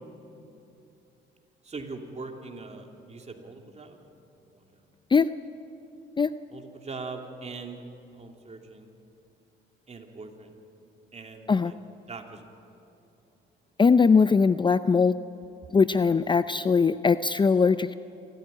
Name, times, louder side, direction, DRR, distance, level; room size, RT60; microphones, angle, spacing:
voice 1, 1.6-4.0 4.5-4.7 6.5-7.8 8.1-8.9 9.9-10.5 11.1-11.8 12.1-12.4, right 3 dB, 35° right, 3 dB, 2.9 m, -41 dB
voice 2, 13.8-15.1 15.7-17.9, left 5 dB, 25° left, 13 dB, 0.5 m, -21 dB
27.5 x 14.5 x 9.8 m, 2.8 s
cardioid pair, 90°, 20 cm